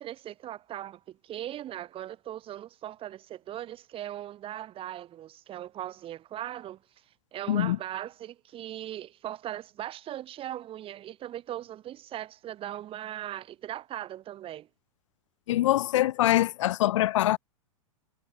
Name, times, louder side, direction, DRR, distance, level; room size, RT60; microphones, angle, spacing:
voice 1, 0.0-6.8 7.3-14.7, right 12 dB, 30° right, 4.5 m, -39 dB
voice 2, 15.5-17.4, left 14 dB, 60° left, 3.4 m, -24 dB
figure-of-eight pair, 100°, 18 cm